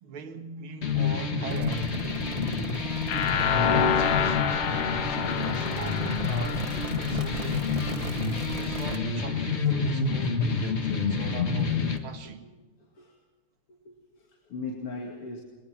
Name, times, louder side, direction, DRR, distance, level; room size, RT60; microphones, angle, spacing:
voice 1, 0.0-2.0 3.4-4.7 5.0-8.2 8.5-12.5, right 5 dB, 70° right, 2.5 m, -41 dB
sound 1, 0.8-12.0, left 5 dB, 35° left, 1.6 m, -29 dB
sound 2, 1.5-9.0, right 4 dB, 50° right, 0.4 m, -38 dB
voice 2, 2.2-2.7 12.9-13.2 13.9-15.4, left 3 dB, 90° left, 3.3 m, -39 dB
sound 3, 3.1-8.0, left 7 dB, 55° left, 1.3 m, -28 dB
21.5 x 21.5 x 6.0 m
omnidirectional pair, 2.4 m